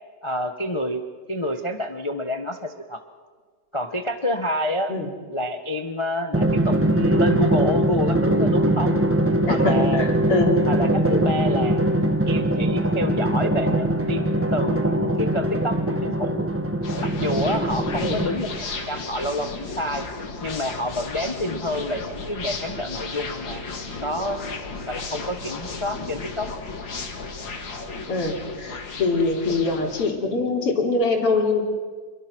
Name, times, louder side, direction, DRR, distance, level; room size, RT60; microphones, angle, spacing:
voice 1, 0.2-1.0 1.3-3.0 3.7-4.9 5.3-9.0 9.5-10.0 10.7-11.8 12.3-16.5 17.0-20.0 20.4-23.6 24.0-24.4 24.9-26.5, left 1 dB, 20° left, 6 dB, 0.9 m, -28 dB
Drum, 6.3-18.7, right 1 dB, 10° right, 0.7 m, -22 dB
voice 2, 9.4-10.5 18.0-18.2 28.1-31.6, left 3 dB, 85° left, 1 dB, 4.4 m, -23 dB
sound 1, 16.8-30.1, left 4 dB, 55° left, 2.7 m, -34 dB
28.0 x 22.5 x 6.2 m, 1.5 s
omnidirectional pair, 2.4 m